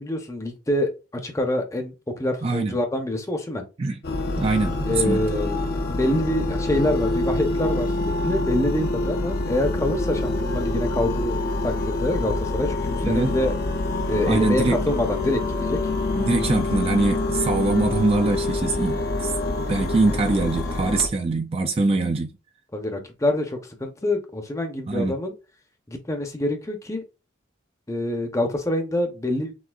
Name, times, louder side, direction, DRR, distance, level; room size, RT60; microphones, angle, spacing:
voice 1, 0.0-3.6 4.9-5.6 5.9-11.4 11.6-13.5 14.1-15.9 22.7-25.3 25.9-27.0 27.9-29.5, left 1 dB, 15° left, 0.8 m, -26 dB
voice 2, 2.4-2.7 3.8-4.0 4.4-5.2 13.0-13.3 14.3-15.0 16.1-19.3 19.7-22.3 24.9-25.1, right 3 dB, 30° right, 0.4 m, -23 dB
sound 1, 4.0-21.1, left 2 dB, 50° left, 0.6 m, -26 dB
6.2 x 2.6 x 2.4 m
head